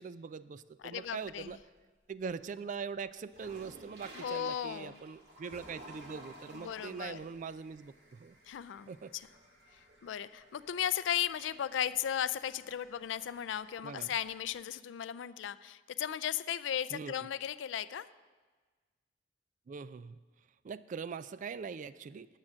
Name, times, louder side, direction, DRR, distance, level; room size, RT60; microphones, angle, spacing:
voice 1, 0.0-1.6 2.1-8.4 8.9-9.1 13.8-14.1 16.9-17.3 19.7-20.2 20.6-22.3, right 5 dB, 45° right, 15 dB, 0.3 m, -42 dB
voice 2, 0.8-1.5 4.1-5.0 6.5-7.2 8.5-9.3 10.0-18.1, left 9 dB, 80° left, 16 dB, 0.3 m, -36 dB
sound 1, 0.8-1.8 2.2-14.5, right 1 dB, 65° right, 1.8 m, -56 dB
9.7 x 7.4 x 6.2 m, 1.4 s
head